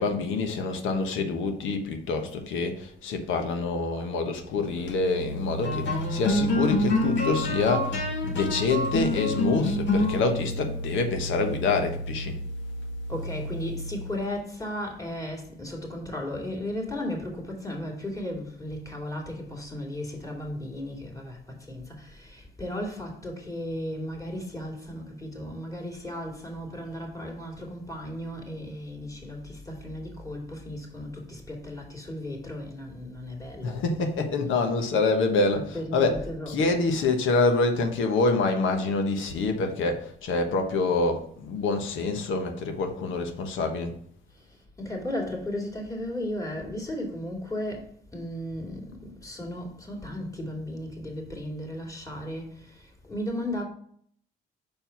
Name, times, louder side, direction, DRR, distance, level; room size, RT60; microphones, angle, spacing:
voice 1, 0.0-12.4 33.6-43.9, left 3 dB, 80° left, 1.3 m, -26 dB
sound 1, 4.7-14.3, left 1 dB, 65° left, 1.8 m, -28 dB
voice 2, 13.1-34.1 34.5-34.8 35.5-36.9 44.3-53.6, left 1 dB, 15° left, 2.6 m, -35 dB
5.6 x 4.5 x 5.8 m
cardioid pair, 90°, 20 cm